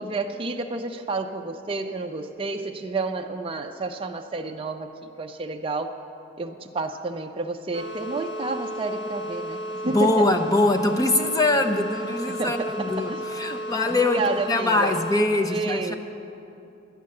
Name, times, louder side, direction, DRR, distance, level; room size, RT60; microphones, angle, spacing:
voice 1, 0.0-6.0 6.4-10.3 12.3-13.2 14.1-15.0 15.5-15.9, right 3 dB, 25° right, 4 dB, 0.4 m, -30 dB
sound 1, 7.7-15.2, right 1 dB, 60° left, 1.6 m, -33 dB
voice 2, 9.8-15.9, left 2 dB, 15° left, 6 dB, 0.6 m, -23 dB
12.5 x 9.4 x 7.6 m, 2.8 s
head